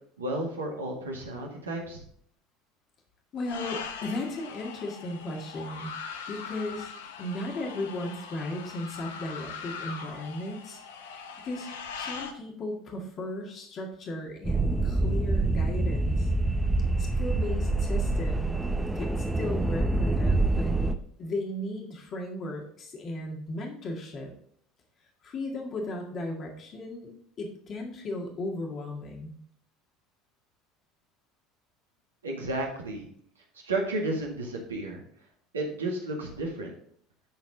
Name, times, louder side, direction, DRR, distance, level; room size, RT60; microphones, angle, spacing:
voice 1, 0.2-2.0 32.2-33.1 33.6-35.0 35.5-36.7, right 2 dB, 90° right, 0 dB, 1.9 m, -32 dB
voice 2, 3.3-5.9 6.3-6.9 7.2-10.8 11.4-11.7 12.0-16.3 17.0-20.7 21.2-24.3 25.2-27.1 27.4-29.4, left 2 dB, 45° left, 1 dB, 1.9 m, -36 dB
sound 1, 3.4-12.3, left 6 dB, 80° left, 0.8 m, -41 dB
sound 2, 14.4-20.9, right 2 dB, 10° right, 0.8 m, -26 dB
11.5 x 4.3 x 3.9 m, 0.63 s
hypercardioid pair, 75°, 0 cm